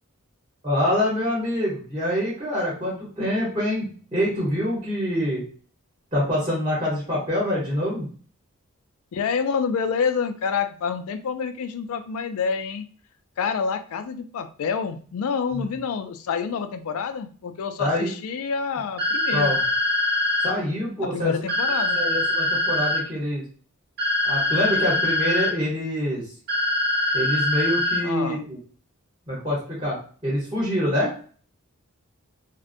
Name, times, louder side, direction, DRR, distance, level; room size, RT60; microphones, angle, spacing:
voice 1, 0.6-3.9 4.1-5.4 6.1-8.1 15.5-15.7 17.8-18.1 19.3-19.6 20.4-21.3 21.9-23.4 24.2-26.2 27.1-28.6 29.3-31.1, left 1 dB, 25° right, -6 dB, 0.9 m, -25 dB
voice 2, 9.1-12.9 13.4-19.5 21.0-22.0 28.0-28.4, left 6 dB, 75° left, 9 dB, 0.3 m, -27 dB
sound 1, 19.0-20.5 21.5-23.0 24.0-25.5 26.5-28.0, left 2 dB, 45° right, 0.5 m, -23 dB
2.5 x 2.1 x 2.5 m, 0.43 s
head